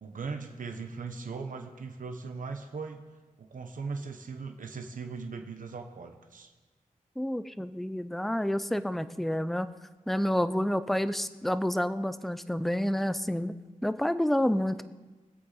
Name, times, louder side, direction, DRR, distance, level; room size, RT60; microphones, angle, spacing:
voice 1, 0.0-3.0 3.4-6.5, right 4 dB, 70° right, 5 dB, 1.1 m, -39 dB
voice 2, 7.2-9.7 10.1-13.5 13.8-14.8, equal, ahead, 13 dB, 0.5 m, -29 dB
24.0 x 8.3 x 4.1 m, 1.3 s
wide cardioid pair, 115°, 14 cm